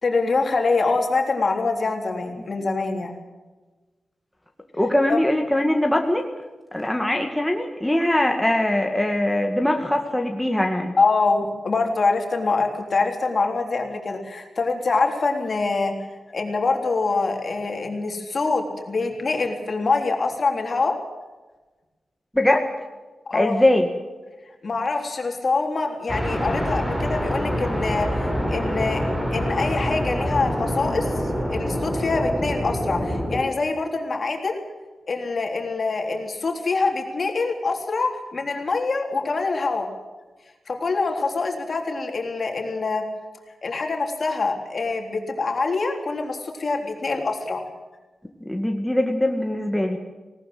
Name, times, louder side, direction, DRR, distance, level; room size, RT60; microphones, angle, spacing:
voice 1, 0.0-3.1 5.1-5.2 11.0-15.9 16.3-21.0 23.3-23.6 24.6-28.1 28.5-29.0 29.3-31.1 31.5-34.6 35.1-39.9 40.7-43.0 43.6-47.6, left 3 dB, 50° left, 3 dB, 3.6 m, -24 dB
voice 2, 4.8-6.3 6.7-10.9 22.3-22.7 23.3-23.9 48.5-50.0, left 1 dB, 5° left, 2 dB, 2.0 m, -21 dB
sound 1, 26.1-33.4, equal, 15° right, 5.3 m, -26 dB
19.5 x 18.5 x 7.9 m, 1.2 s
wide cardioid pair, 105°, 0 cm